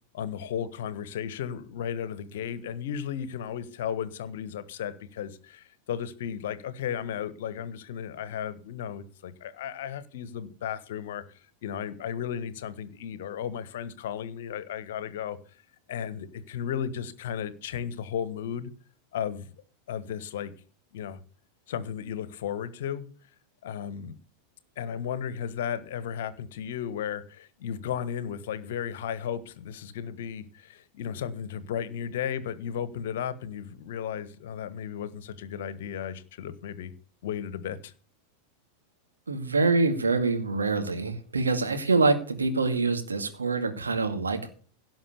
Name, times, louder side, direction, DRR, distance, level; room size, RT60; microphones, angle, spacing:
voice 1, 0.1-15.4 15.9-18.7 19.1-19.5 19.9-20.5 20.9-21.2 21.7-23.1 23.6-24.2 24.8-36.9 37.2-37.9, left 8 dB, 55° left, 16 dB, 1.3 m, -34 dB
voice 2, 39.3-44.5, right 3 dB, 75° right, 7 dB, 2.2 m, -25 dB
17.0 x 6.2 x 6.7 m, 0.42 s
figure-of-eight pair, 90°, 0 cm